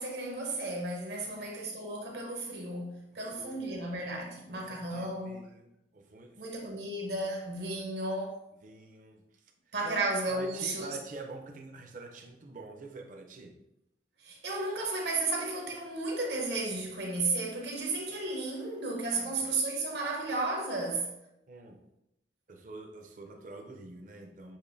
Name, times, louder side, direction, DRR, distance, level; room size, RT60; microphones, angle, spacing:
voice 1, 0.0-5.4 6.4-8.4 9.7-10.9 14.2-21.1, right 2 dB, 70° right, 1.0 m, -33 dB
voice 2, 1.2-1.5 3.1-3.9 4.5-6.7 8.6-10.0 10.3-13.6 19.1-19.5 21.5-21.8 22.5-24.6, right 2 dB, 45° right, 0.5 m, -47 dB
6.9 x 2.6 x 2.6 m
head